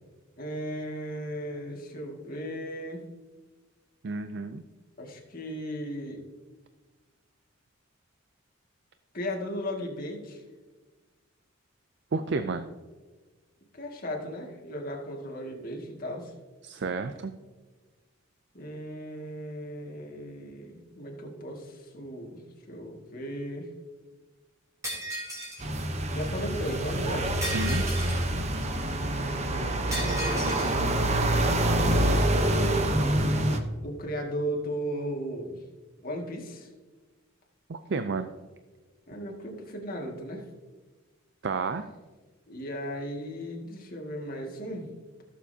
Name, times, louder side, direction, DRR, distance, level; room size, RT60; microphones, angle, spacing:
voice 1, 0.4-3.0 5.0-6.2 9.1-10.4 13.7-16.3 18.5-22.4 22.7-23.7 26.1-27.3 29.0-30.7 33.8-35.6 36.0-36.7 39.1-40.4 42.5-44.9, equal, 45° left, 0 dB, 2.0 m, -36 dB
voice 2, 4.0-4.6 12.1-12.7 16.6-17.3 27.4-27.9 37.7-38.3 41.4-41.9, right 4 dB, 55° right, 9 dB, 0.4 m, -31 dB
Shatter, 24.8-25.7 27.4-28.3 29.9-30.7, right 1 dB, 15° right, 3.4 m, -35 dB
sound 1, 25.6-33.6, right 1 dB, 35° right, 0.9 m, -26 dB
16.0 x 7.3 x 2.8 m, 1.3 s
head